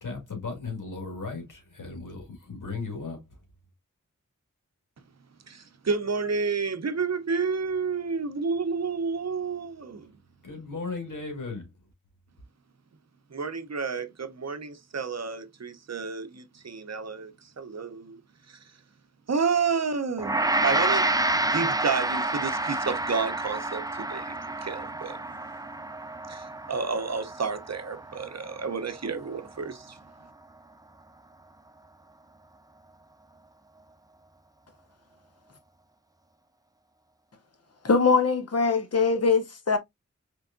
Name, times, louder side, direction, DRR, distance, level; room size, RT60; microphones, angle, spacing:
voice 1, 0.0-3.2 10.4-11.7, left 4 dB, 85° left, 1.9 m, -36 dB
voice 2, 5.5-10.1 13.3-18.2 18.5-18.6 19.3-21.1 21.5-24.3 24.6-25.4 26.3-30.0, right 5 dB, 60° right, 0.7 m, -30 dB
Gong, 20.2-29.6, right 2 dB, 10° right, 0.4 m, -29 dB
voice 3, 37.8-39.8, left 4 dB, 55° left, 0.8 m, -22 dB
4.6 x 3.4 x 2.5 m
wide cardioid pair, 50°, 30 cm